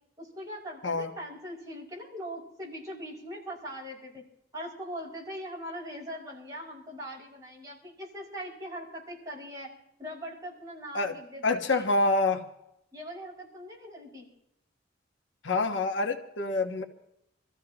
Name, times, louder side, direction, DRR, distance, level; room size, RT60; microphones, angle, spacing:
voice 1, 0.2-4.2 4.5-9.7 10.0-11.9 12.9-14.3, equal, 20° right, -4 dB, 5.9 m, -41 dB
voice 2, 11.4-12.5 15.4-16.8, left 2 dB, 90° left, 5 dB, 1.4 m, -26 dB
26.0 x 14.5 x 3.0 m, 0.80 s
head